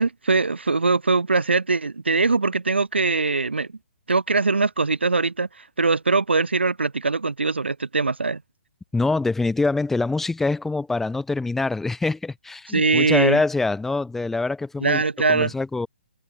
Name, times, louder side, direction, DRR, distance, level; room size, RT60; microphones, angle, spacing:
voice 1, 0.0-3.7 4.1-5.5 5.8-8.4 12.7-13.4 14.8-15.5, right 3 dB, 70° right, 3.8 m, -21 dB
voice 2, 8.9-15.0 15.3-15.9, left 3 dB, 5° left, 5.5 m, -24 dB
figure-of-eight pair, 130°, 6 cm